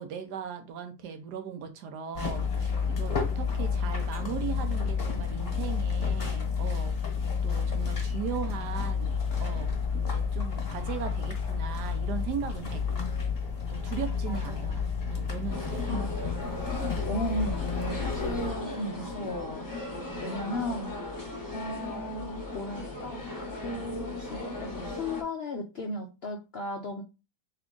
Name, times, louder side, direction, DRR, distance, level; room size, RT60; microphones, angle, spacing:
voice 1, 0.0-7.0 7.4-12.8 13.7-16.0 20.1-20.7, right 8 dB, 75° right, 1.3 m, -38 dB
sound 1, 2.1-18.5, left 6 dB, 35° left, 1.3 m, -30 dB
voice 2, 13.9-14.8 15.9-19.7 20.2-27.0, left 1 dB, 65° left, 0.6 m, -36 dB
sound 2, 15.5-25.2, left 2 dB, 15° left, 0.7 m, -37 dB
3.5 x 3.5 x 3.7 m
omnidirectional pair, 1.9 m